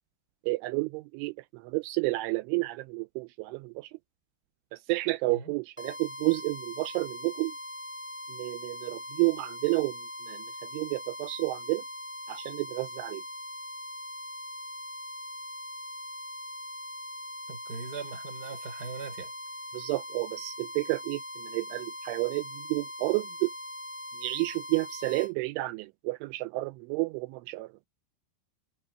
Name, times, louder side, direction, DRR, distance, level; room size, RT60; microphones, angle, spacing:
voice 1, 0.4-3.9 4.7-7.5 8.3-10.5 10.7-11.8 12.3-13.2 19.7-23.5 24.2-27.9, right 24 dB, 85° right, 2.9 m, -31 dB
sound 1, 5.8-25.3, left 1 dB, ahead, 4.3 m, -41 dB
voice 2, 17.5-19.3, right 5 dB, 25° right, 2.6 m, -40 dB
omnidirectional pair, 5.6 m